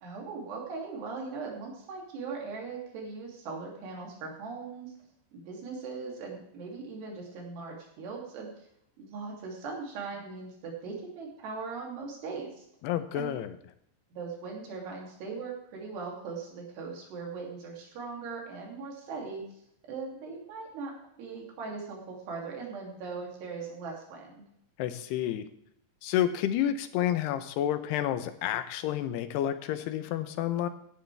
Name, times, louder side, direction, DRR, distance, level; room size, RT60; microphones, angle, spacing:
voice 1, 0.0-4.9 5.3-8.7 9.0-12.6 13.1-13.3 14.1-19.4 19.9-24.4, right 4 dB, 75° right, -1 dB, 5.0 m, -39 dB
voice 2, 12.8-13.5 24.8-25.5 26.0-30.7, left 11 dB, 80° left, 11 dB, 2.8 m, -30 dB
16.5 x 10.5 x 3.4 m, 0.73 s
omnidirectional pair, 4.8 m